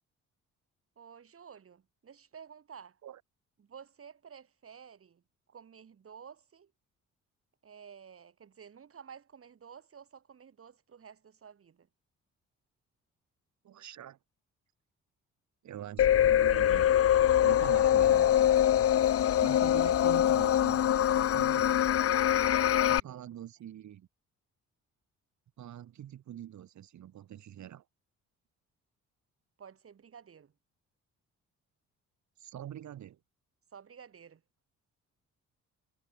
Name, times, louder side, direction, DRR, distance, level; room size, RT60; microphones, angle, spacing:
voice 1, 1.0-3.0 3.6-5.2 5.5-6.7 7.6-11.9 19.1-19.5 22.4-23.2 29.6-30.5 33.7-34.4, right 7 dB, 50° right, 4.6 m, -52 dB
voice 2, 13.6-14.2 15.6-16.9 17.4-18.5 19.4-20.8 21.1-21.8 22.9-24.1 25.6-27.8 32.4-33.2, right 11 dB, 70° right, 4.7 m, -44 dB
sound 1, 16.0-23.0, left 11 dB, 50° left, 0.7 m, -24 dB
cardioid pair, 90°, 30 cm